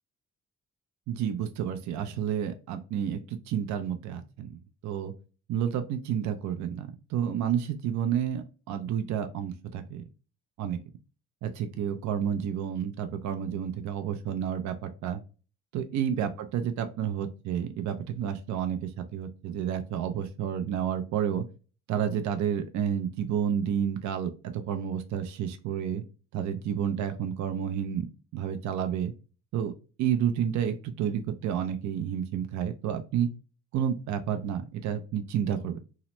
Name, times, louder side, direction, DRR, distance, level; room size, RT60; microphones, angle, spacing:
voice 1, 1.1-5.1 5.5-10.0 10.6-10.8 11.4-15.2 15.7-21.4 21.9-26.0 26.3-28.1 28.3-29.1 29.5-29.7 30.0-33.3 33.7-35.8, right 9 dB, 70° right, 8 dB, 0.5 m, -30 dB
2.8 x 2.1 x 2.9 m, 0.35 s
cardioid pair, 90°, 30 cm